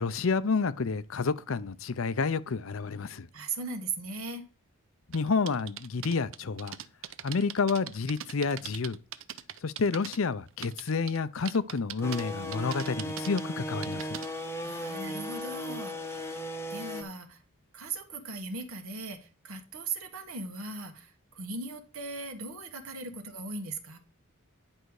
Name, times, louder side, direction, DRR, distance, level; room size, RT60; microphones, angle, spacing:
voice 1, 0.0-3.3 5.1-6.8 7.2-9.0 9.6-14.2, left 4 dB, 70° left, 0.6 m, -29 dB
voice 2, 3.3-4.4 14.2-17.4 17.7-24.0, right 3 dB, 80° right, 1.6 m, -39 dB
sound 1, 5.1-10.2 10.5-11.2 11.4-12.2 12.5-14.3, right 10 dB, 65° right, 0.6 m, -41 dB
sound 2, 12.0-17.0, equal, 10° left, 0.8 m, -36 dB
10.5 x 5.6 x 4.8 m
head